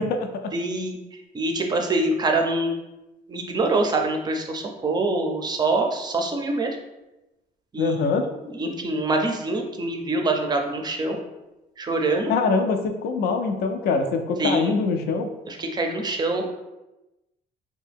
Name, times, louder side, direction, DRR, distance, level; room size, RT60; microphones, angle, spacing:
voice 1, 0.0-0.5 7.8-8.3 12.3-15.3, left 4 dB, 70° left, 6 dB, 0.4 m, -24 dB
voice 2, 0.5-2.8 3.3-6.8 7.7-7.9 8.4-11.2 11.8-12.3 14.4-14.7 15.5-16.5, right 2 dB, 25° right, 3 dB, 0.4 m, -25 dB
2.6 x 2.1 x 3.4 m, 0.99 s
cardioid pair, 110°, 17 cm